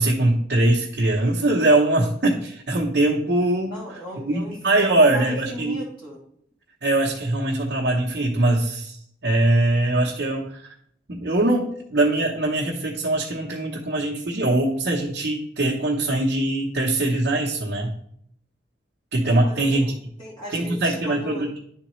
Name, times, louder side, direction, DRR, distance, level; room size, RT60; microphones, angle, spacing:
voice 1, 0.0-3.8 4.2-5.8 6.8-10.7 11.1-17.9 19.1-19.9 20.5-21.6, right 2 dB, 60° right, -3 dB, 0.9 m, -22 dB
voice 2, 3.7-6.2 19.3-21.5, equal, 25° left, -4 dB, 2.5 m, -37 dB
10.5 x 3.9 x 3.1 m, 0.67 s
head